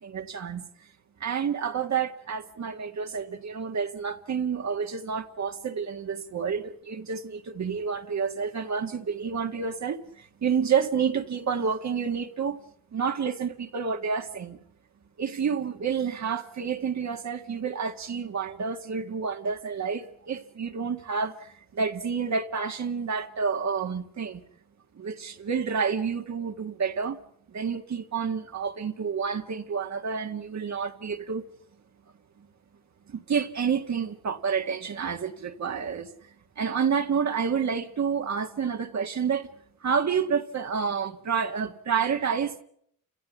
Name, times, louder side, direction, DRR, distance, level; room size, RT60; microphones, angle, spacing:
voice 1, 0.0-0.7 1.2-12.6 12.9-14.6 15.2-24.4 24.9-27.2 27.5-31.4 32.4-32.5 33.1-36.1 36.6-39.5 39.8-42.6, right 6 dB, 50° right, 2.0 m, -29 dB
29.5 x 17.0 x 7.1 m
cardioid pair, 105°, 35 cm